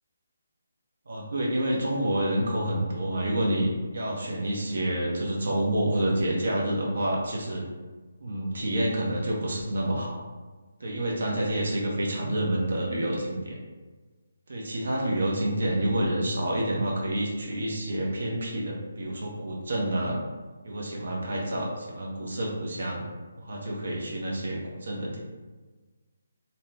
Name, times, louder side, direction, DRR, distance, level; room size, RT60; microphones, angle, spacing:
voice 1, 1.1-7.6 8.2-10.2 10.8-13.6 14.5-20.2 20.6-23.0 23.4-25.2, right 1 dB, 65° right, -2 dB, 0.6 m, -28 dB
2.6 x 2.1 x 3.2 m, 1.3 s
figure-of-eight pair, 150°, 0 cm